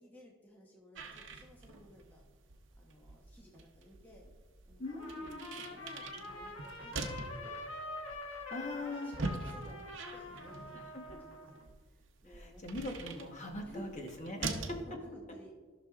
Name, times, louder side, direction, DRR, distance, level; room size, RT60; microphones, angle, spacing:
voice 1, 0.0-2.2 2.8-4.2 4.7-7.5 8.6-12.6 13.0-13.2 13.6-13.9 14.4-15.5, left 1 dB, 10° left, -2 dB, 0.9 m, -56 dB
sound 1, 0.9-14.8, right 3 dB, 60° right, 0.7 m, -44 dB
voice 2, 4.8-5.5 8.5-9.3 11.1-11.2 12.3-14.8, left 1 dB, 35° left, 1 dB, 1.0 m, -41 dB
Trumpet, 4.9-11.6, left 2 dB, 80° left, 1.2 m, -46 dB
14.0 x 6.1 x 2.4 m, 1.5 s
head